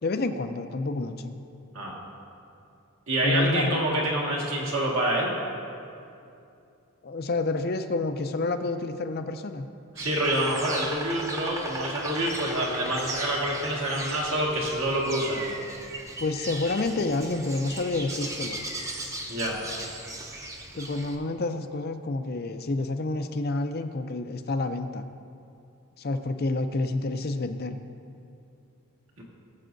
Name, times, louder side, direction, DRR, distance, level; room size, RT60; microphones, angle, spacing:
voice 1, 0.0-1.4 3.2-3.9 7.0-9.7 16.2-18.6 20.7-25.0 26.0-27.8, left 2 dB, 45° left, 7 dB, 0.5 m, -29 dB
voice 2, 3.1-5.3 10.0-15.5 19.3-19.6 29.2-29.3, right 1 dB, 65° right, -3 dB, 1.8 m, -27 dB
Insect, 10.0-21.2, right 1 dB, 15° right, 0.6 m, -37 dB
19.5 x 7.3 x 2.6 m, 2.6 s
head